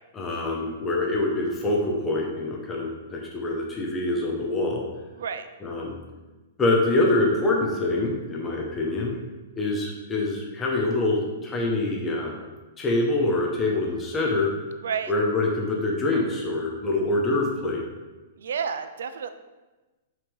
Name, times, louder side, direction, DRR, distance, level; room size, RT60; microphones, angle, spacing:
voice 1, 0.1-4.8 5.6-6.0 6.6-9.2 9.5-12.4 12.8-14.5 15.1-17.8, left 2 dB, 10° left, -2 dB, 0.7 m, -25 dB
voice 2, 5.2-5.5 14.8-15.1 18.4-19.3, right 6 dB, 80° right, 10 dB, 0.5 m, -30 dB
5.8 x 3.3 x 5.4 m, 1.2 s
hypercardioid pair, 170°, 0 cm